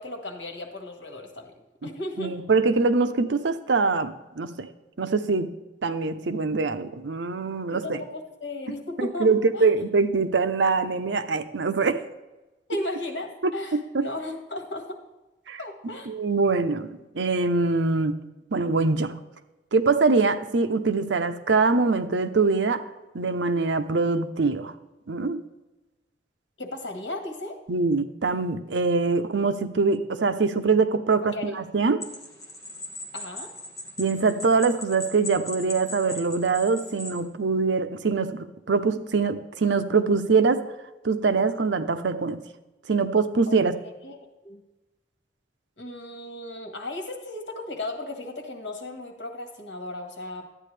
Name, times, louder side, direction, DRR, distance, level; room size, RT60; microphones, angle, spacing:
voice 1, 0.0-1.5 1.8-2.3 7.7-9.3 9.5-9.7 12.7-15.0 15.6-16.1 26.6-27.6 31.2-31.6 33.1-33.5 43.5-43.6 44.0-44.6 45.8-50.4, left 1 dB, 85° left, 3 dB, 1.7 m, -35 dB
voice 2, 2.2-4.7 5.0-5.5 5.8-8.0 9.0-12.0 13.4-14.0 15.5-15.6 16.1-18.1 18.5-19.1 19.7-22.8 23.1-24.7 25.1-25.4 27.7-32.0 34.0-40.7 41.0-42.4 42.9-43.7, right 4 dB, 85° right, 9 dB, 0.7 m, -23 dB
sound 1, 32.0-37.2, left 1 dB, 20° left, 1.3 m, -39 dB
12.0 x 9.2 x 3.3 m, 1.1 s
head